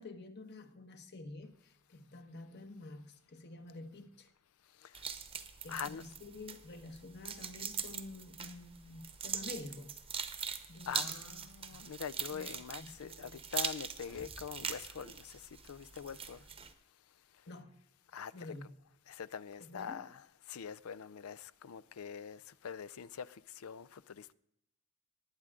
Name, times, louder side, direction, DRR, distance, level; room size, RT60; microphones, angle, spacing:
voice 1, 0.0-4.3 5.6-10.0 10.7-11.3 11.7-11.9 12.3-13.4 17.5-17.8 18.3-18.7 19.6-20.1, left 2 dB, 50° left, 1.3 m, -49 dB
sound 1, 4.9-16.7, right 7 dB, 25° right, 0.8 m, -42 dB
voice 2, 5.7-6.0 10.9-16.4 18.1-18.3 19.1-20.2 20.5-24.3, left 7 dB, 85° left, 0.5 m, -44 dB
Violent Cinematic Impact, 14.0-16.1, equal, 5° left, 0.8 m, -59 dB
19.5 x 9.7 x 3.7 m
head